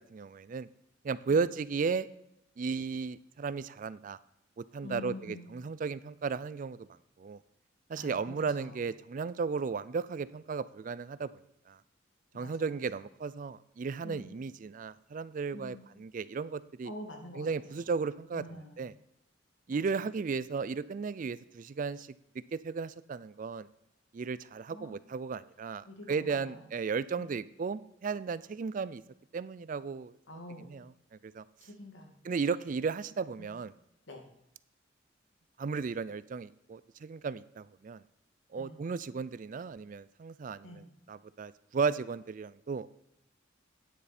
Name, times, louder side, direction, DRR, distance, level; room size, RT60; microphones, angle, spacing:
voice 1, 0.1-0.7 1.0-2.1 2.6-4.2 4.6-6.8 7.2-7.4 7.9-11.3 11.7-11.8 12.3-16.9 17.3-18.9 19.7-22.1 22.5-23.7 24.1-29.0 29.3-30.1 30.7-30.9 31.3-31.4 32.2-33.7 35.6-38.0 38.5-42.9, right 5 dB, 45° right, 17 dB, 0.3 m, -35 dB
voice 2, 4.8-5.4 7.9-8.8 12.3-12.5 14.0-14.3 15.5-15.8 16.8-17.8 18.3-18.8 19.7-20.0 24.7-25.0 25.9-26.6 27.2-27.3 30.3-30.8 31.6-32.1 33.4-33.5 34.1-34.2 38.6-38.8 40.6-40.9, left 1 dB, 80° left, 2 dB, 2.2 m, -46 dB
9.5 x 8.4 x 4.3 m, 0.79 s
head